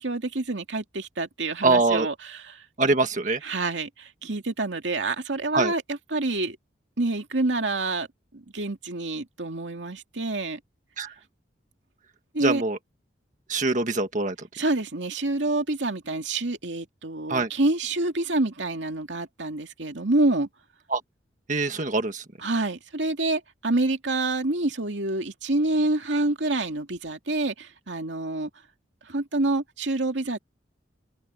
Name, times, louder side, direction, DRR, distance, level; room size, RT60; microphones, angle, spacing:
voice 1, 0.0-2.6 3.4-6.6 7.0-8.1 8.3-10.6 12.3-12.6 14.5-20.5 22.4-28.5 29.0-30.4, right 2 dB, 80° right, 2.3 m, -27 dB
voice 2, 1.6-2.1 2.8-3.4 5.5-5.7 11.0-11.1 12.4-12.8 13.5-14.3 17.3-17.5 20.9-21.0 21.5-22.2, right 3 dB, 45° right, 1.7 m, -23 dB
open air
head